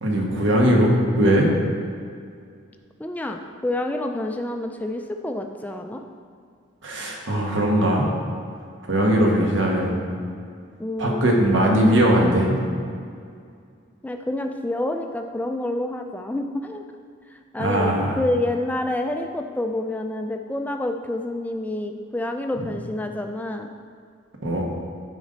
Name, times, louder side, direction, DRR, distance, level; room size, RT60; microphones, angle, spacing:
voice 1, 0.0-1.5 6.8-8.1 8.9-10.0 11.0-12.6 17.6-18.2 22.6-22.7 24.4-24.6, right 1 dB, 75° right, -1 dB, 1.3 m, -19 dB
voice 2, 3.0-6.0 10.8-11.6 14.0-16.9 17.3-23.7, left 1 dB, 10° left, 4 dB, 0.3 m, -28 dB
9.4 x 5.3 x 3.9 m, 2.3 s
head